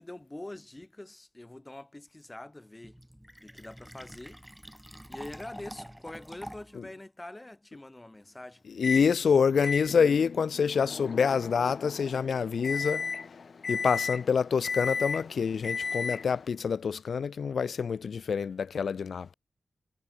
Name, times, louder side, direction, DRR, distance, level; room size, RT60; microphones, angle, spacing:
voice 1, 0.0-3.0 3.4-4.5 5.1-8.6, left 1 dB, 15° left, 5.4 m, -44 dB
Fill (with liquid), 2.8-6.8, equal, ahead, 1.5 m, -46 dB
voice 2, 8.8-13.0 13.7-19.3, left 6 dB, 75° left, 0.7 m, -27 dB
Microwave oven, 8.8-9.1 9.6-16.5, left 5 dB, 50° left, 1.0 m, -35 dB
wide cardioid pair, 175°, 0 cm